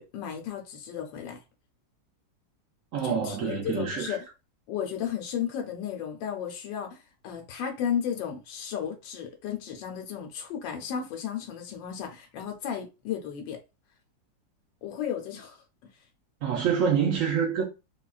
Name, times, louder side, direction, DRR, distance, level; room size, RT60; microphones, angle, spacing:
voice 1, 0.0-1.4 3.0-4.3 4.7-13.6 14.8-15.6, left 8 dB, 90° left, 1.4 m, -34 dB
voice 2, 2.9-4.2 16.4-17.6, right 7 dB, 65° right, 0.8 m, -26 dB
3.8 x 2.3 x 2.3 m
omnidirectional pair, 2.0 m